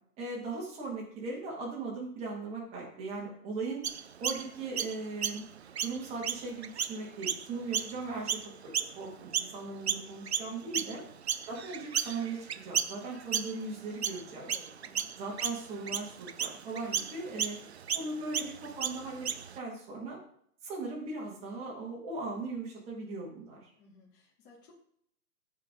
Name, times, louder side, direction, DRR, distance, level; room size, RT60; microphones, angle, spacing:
voice 1, 0.2-3.8 4.2-5.4 5.8-11.0 11.5-14.4 15.2-17.6 17.9-19.3 19.6-20.2 20.6-23.7, right 3 dB, 15° right, -2 dB, 2.0 m, -38 dB
Chirp tweet, 3.8-9.6 9.9-19.6, right 8 dB, 45° right, 0.4 m, -34 dB
voice 2, 10.8-11.2 14.3-15.1 23.8-24.7, left 3 dB, 35° left, -5 dB, 3.0 m, -56 dB
14.5 x 5.0 x 3.7 m, 0.67 s
hypercardioid pair, 160°, 47 cm